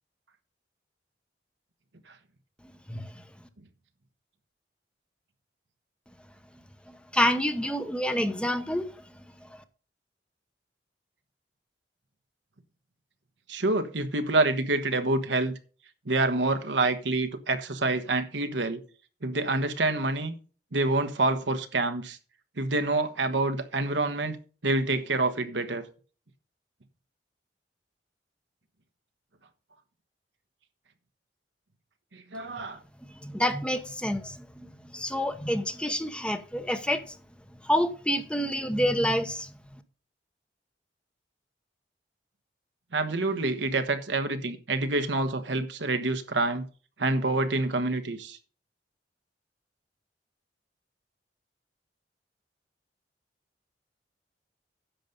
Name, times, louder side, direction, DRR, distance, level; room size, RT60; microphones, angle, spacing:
voice 1, 7.1-8.8 33.2-34.4 34.9-37.0 37.6-39.5, equal, 5° left, 0.9 m, -27 dB
voice 2, 13.5-15.5 16.0-18.8 19.2-20.3 20.7-22.2 22.6-24.4 24.6-25.8 32.1-32.8 42.9-46.6 47.0-48.4, right 2 dB, 90° right, 1.3 m, -27 dB
10.5 x 6.8 x 5.3 m
head